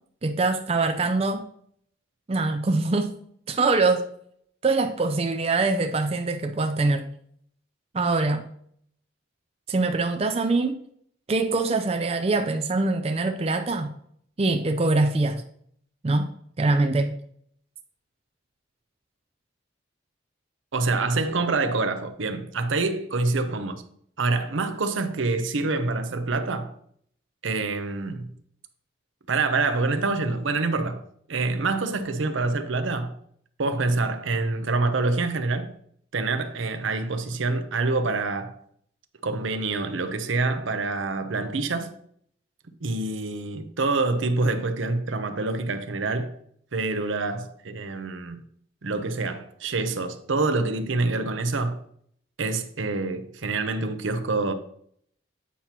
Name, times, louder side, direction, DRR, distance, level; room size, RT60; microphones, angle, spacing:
voice 1, 0.2-1.4 2.3-3.1 3.5-4.1 4.6-7.1 7.9-8.4 9.7-10.8 11.3-13.9 14.4-15.4 16.0-16.3 16.6-17.1, right 3 dB, 30° right, 0.4 m, -23 dB
voice 2, 20.7-23.8 24.2-26.7 27.4-28.3 29.3-33.2 33.6-35.8 36.1-38.6 39.2-42.0 42.8-46.4 46.7-48.4 48.8-51.8 52.4-54.5, right 3 dB, 80° right, 0.7 m, -26 dB
8.4 x 2.9 x 5.8 m
head